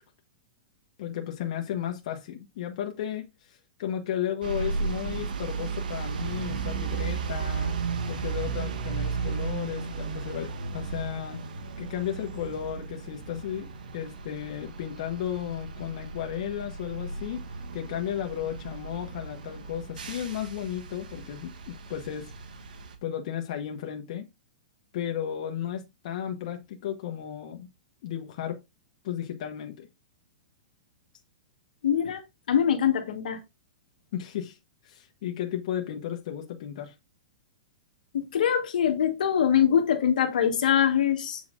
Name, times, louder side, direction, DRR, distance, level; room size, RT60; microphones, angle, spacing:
voice 1, 1.0-7.7 8.1-11.4 11.8-17.4 17.7-22.3 23.0-24.3 24.9-27.7 28.0-28.6 29.0-29.9 34.1-34.6 34.8-36.9, left 10 dB, 55° left, 1.2 m, -34 dB
sound 1, 4.4-22.9, right 5 dB, 90° right, 1.6 m, -35 dB
voice 2, 31.8-32.2 32.5-33.4 38.1-41.4, left 9 dB, 75° left, 1.5 m, -23 dB
7.6 x 5.6 x 2.6 m
hypercardioid pair, 150°, 4 cm